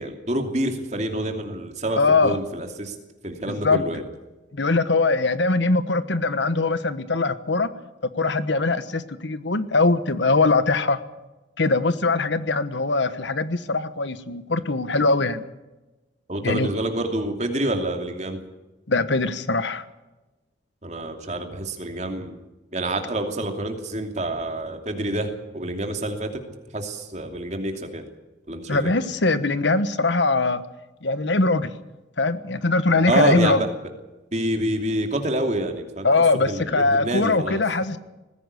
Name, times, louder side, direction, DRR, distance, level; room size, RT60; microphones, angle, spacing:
voice 1, 0.0-2.9 3.2-4.0 16.3-18.4 20.8-22.4 22.7-26.4 26.7-28.1 28.5-28.9 33.1-33.7 34.3-36.1 36.3-37.6, right 1 dB, 40° right, 4 dB, 2.8 m, -27 dB
voice 2, 1.9-2.4 3.5-3.8 4.5-7.7 8.1-11.0 11.6-15.4 16.4-16.7 18.9-19.8 28.7-30.6 31.0-31.7 32.2-33.6 36.0-38.0, left 3 dB, 75° left, 13 dB, 1.2 m, -21 dB
19.5 x 16.0 x 8.4 m, 1.1 s
head